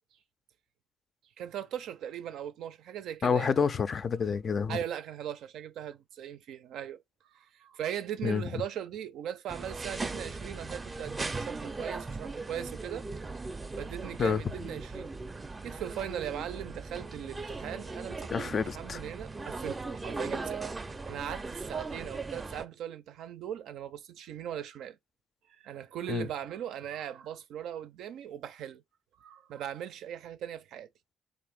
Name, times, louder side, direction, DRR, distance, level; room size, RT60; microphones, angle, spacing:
voice 1, 1.4-3.5 4.7-13.0 13.8-15.1 15.6-25.0 25.5-28.8 29.2-30.9, right 10 dB, 80° right, 0.4 m, -39 dB
voice 2, 3.2-4.8 8.2-8.6 14.2-14.4 18.3-19.0 26.1-26.3, left 6 dB, 45° left, 0.3 m, -28 dB
sound 1, 9.5-22.7, right 3 dB, 25° right, 0.5 m, -38 dB
3.3 x 2.5 x 3.6 m
cardioid pair, 90°, 0 cm